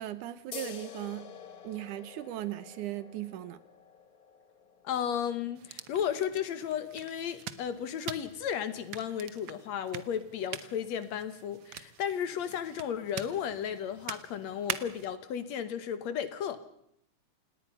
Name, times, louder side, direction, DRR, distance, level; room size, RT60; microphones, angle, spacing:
voice 1, 0.0-1.3 1.6-3.6, right 13 dB, 85° right, 2.6 m, -38 dB
sound 1, 0.5-7.6, left 7 dB, 85° left, 0.8 m, -49 dB
voice 2, 4.8-16.6, left 8 dB, 65° left, 2.3 m, -34 dB
sound 2, 5.5-15.2, right 10 dB, 70° right, 1.2 m, -44 dB
28.5 x 18.5 x 5.6 m
omnidirectional pair, 3.5 m